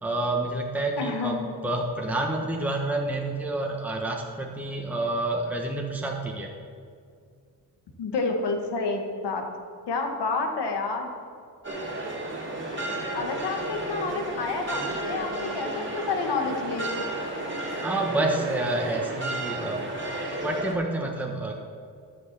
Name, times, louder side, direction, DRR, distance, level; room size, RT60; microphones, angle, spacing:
voice 1, 0.0-1.4 1.6-6.5 17.8-19.8 20.3-21.5, right 2 dB, 5° right, 0 dB, 1.2 m, -28 dB
voice 2, 1.0-1.5 8.0-9.4 9.9-11.1 13.1-17.1, left 3 dB, 90° left, 4 dB, 1.6 m, -29 dB
sound 1, 11.6-20.7, right 2 dB, 30° right, 2.4 m, -32 dB
13.0 x 6.2 x 7.4 m, 2.2 s
cardioid pair, 105°, 40 cm